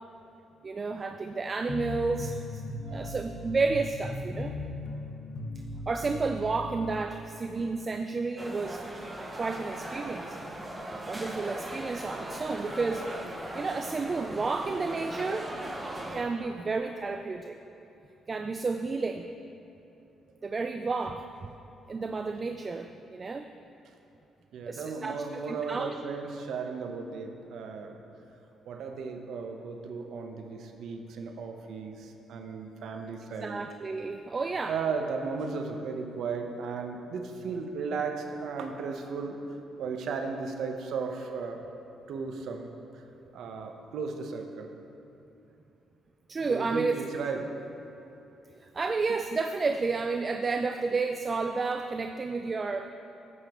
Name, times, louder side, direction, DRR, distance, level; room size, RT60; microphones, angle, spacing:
voice 1, 0.6-2.6 2.9-4.6 5.6-8.8 9.4-10.4 11.1-15.6 16.1-17.6 18.3-19.3 20.4-21.5 21.9-23.5 24.7-25.9 33.4-34.8 46.3-47.0 48.6-52.9, right 4 dB, 35° right, 7 dB, 0.3 m, -31 dB
sound 1, 1.7-7.0, left 2 dB, 60° left, 1.2 m, -38 dB
voice 2, 2.8-3.3 24.5-28.0 28.7-33.6 34.7-39.4 39.8-41.6 42.1-42.7 42.9-43.0 43.3-44.7 46.4-47.5 47.8-47.9, right 5 dB, 75° right, 4 dB, 0.8 m, -35 dB
sound 2, 8.4-16.2, right 1 dB, 15° right, 1.1 m, -39 dB
12.0 x 8.1 x 3.0 m, 2.9 s
cardioid pair, 90°, 0 cm